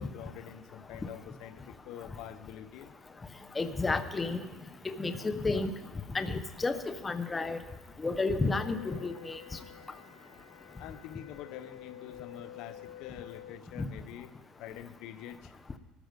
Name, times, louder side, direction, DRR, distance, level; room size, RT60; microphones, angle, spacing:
voice 1, 0.0-2.9 10.8-15.5, left 11 dB, 65° left, 11 dB, 0.9 m, -46 dB
voice 2, 3.5-4.4 4.8-5.7 6.1-7.6 8.0-9.4 13.8-13.9, left 3 dB, 20° left, 9 dB, 1.1 m, -31 dB
Wind instrument woodwind instrument, 8.1-13.6, left 11 dB, 85° left, 1.5 m, -50 dB
20.0 x 13.5 x 5.3 m, 1.1 s
supercardioid pair, 110°, 0 cm